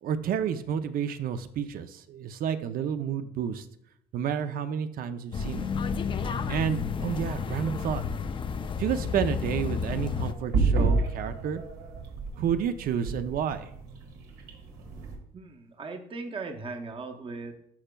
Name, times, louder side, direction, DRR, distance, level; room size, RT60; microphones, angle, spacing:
voice 1, 0.0-3.6 4.1-5.7 6.5-8.0 8.8-11.6 12.4-13.7, right 8 dB, 60° right, 10 dB, 0.6 m, -30 dB
sound 1, 5.3-10.3, left 6 dB, 30° left, 0.4 m, -31 dB
sound 2, 9.7-15.1, right 3 dB, 85° right, 1.6 m, -30 dB
voice 2, 15.3-17.6, right 3 dB, 30° right, 5 dB, 0.8 m, -38 dB
12.0 x 4.4 x 2.3 m, 0.73 s
cardioid pair, 110°, 17 cm